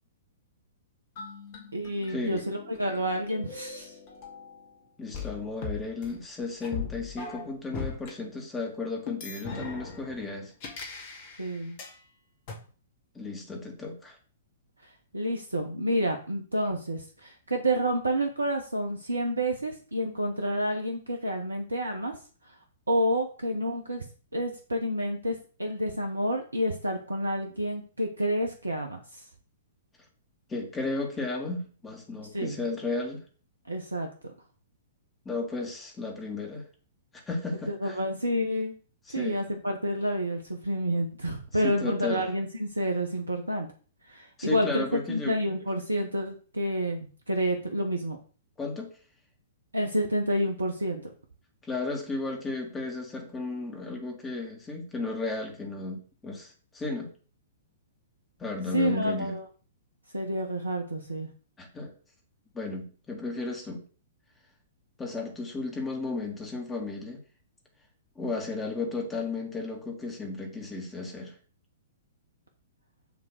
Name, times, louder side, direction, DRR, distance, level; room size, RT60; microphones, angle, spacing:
sound 1, 1.2-4.7 5.1-8.1 9.1-12.0 12.5-12.6, left 4 dB, 40° left, 2.1 m, -40 dB
voice 1, 1.7-3.9 11.4-11.8 15.1-22.2 22.9-24.0 24.3-29.2 32.3-32.6 33.7-34.1 37.7-38.7 39.1-43.7 44.1-48.2 49.7-51.0 58.7-59.4 60.1-61.3, equal, 80° right, 4 dB, 1.0 m, -29 dB
voice 2, 5.0-10.5 13.1-14.2 30.5-33.2 35.3-36.6 37.1-38.0 39.1-39.4 41.5-42.3 44.4-45.4 48.6-48.9 51.6-57.1 58.4-59.4 61.6-61.9 62.5-63.8 65.0-67.2 68.2-71.4, left 3 dB, 15° left, 1 dB, 2.1 m, -34 dB
7.2 x 3.7 x 6.5 m, 0.40 s
figure-of-eight pair, 110°, 0 cm